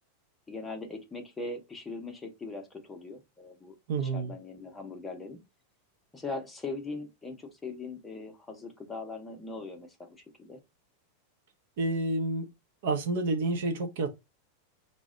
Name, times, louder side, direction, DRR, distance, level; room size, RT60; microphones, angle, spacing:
voice 1, 0.5-3.7 4.1-5.4 6.1-10.6, left 3 dB, 10° left, 0.6 m, -40 dB
voice 2, 3.9-4.3 11.8-12.5 12.8-14.1, right 3 dB, 60° right, 0.6 m, -29 dB
4.0 x 2.1 x 3.6 m
supercardioid pair, 165°, 0 cm